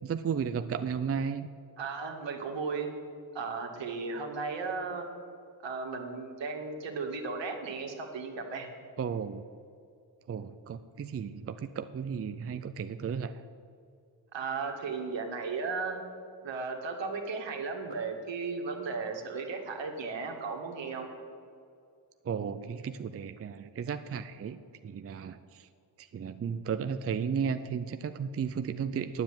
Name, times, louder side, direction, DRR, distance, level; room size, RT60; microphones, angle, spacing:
voice 1, 0.0-1.5 9.0-9.4 10.3-13.4 22.2-25.7 26.0-29.2, right 7 dB, 30° right, 10 dB, 0.5 m, -34 dB
voice 2, 1.8-2.9 3.3-5.1 5.6-8.7 14.3-16.0 16.4-21.1, right 4 dB, 70° right, 2 dB, 2.0 m, -35 dB
9.5 x 8.0 x 8.8 m, 2.4 s
cardioid pair, 70°, 46 cm